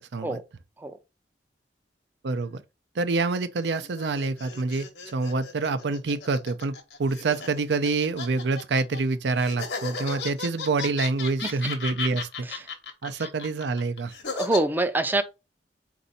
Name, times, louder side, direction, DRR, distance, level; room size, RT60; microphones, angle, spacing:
voice 1, 2.2-2.6 3.0-4.9 5.1-12.5 13.0-14.1, right 3 dB, 80° right, 0.5 m, -27 dB
sound 1, 3.6-9.0 9.4-14.6, left 5 dB, 70° left, 1.0 m, -35 dB
voice 2, 14.3-15.2, right 2 dB, 10° right, 0.4 m, -25 dB
4.2 x 2.6 x 3.9 m
head